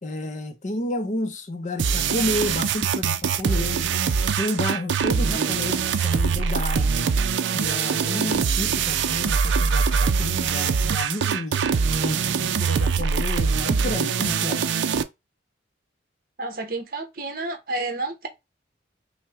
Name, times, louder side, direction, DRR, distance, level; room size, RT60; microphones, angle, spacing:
voice 1, 0.0-3.9 4.4-7.1 7.5-11.6 12.0-14.7, left 1 dB, 40° left, 0.6 m, -31 dB
sound 1, 1.8-15.0, right 6 dB, 75° right, 0.4 m, -23 dB
voice 2, 16.4-18.3, right 2 dB, 50° right, 0.9 m, -30 dB
5.7 x 2.1 x 3.4 m
head